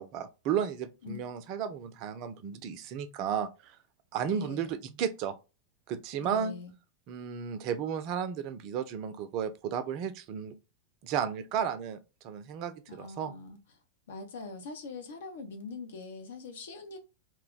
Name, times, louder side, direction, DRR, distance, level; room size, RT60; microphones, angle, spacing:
voice 1, 0.0-3.8 4.1-5.4 5.9-6.5 7.1-10.6 11.0-12.0 12.2-13.3, right 8 dB, 40° right, 0.4 m, -33 dB
voice 2, 4.3-4.8 6.2-6.7 12.9-13.6 14.1-17.0, left 4 dB, 60° left, 0.6 m, -43 dB
2.2 x 2.1 x 3.7 m
figure-of-eight pair, 90°, 0 cm